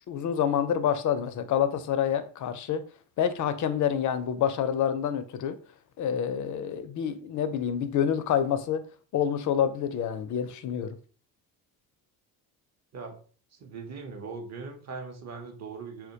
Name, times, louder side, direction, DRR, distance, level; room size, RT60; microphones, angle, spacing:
voice 1, 0.1-2.8 3.2-5.6 6.0-8.8 9.1-11.0, left 8 dB, 40° left, 0.4 m, -27 dB
voice 2, 13.5-16.1, right 4 dB, 35° right, 0.7 m, -40 dB
2.1 x 2.1 x 2.8 m
supercardioid pair, 65°, 48 cm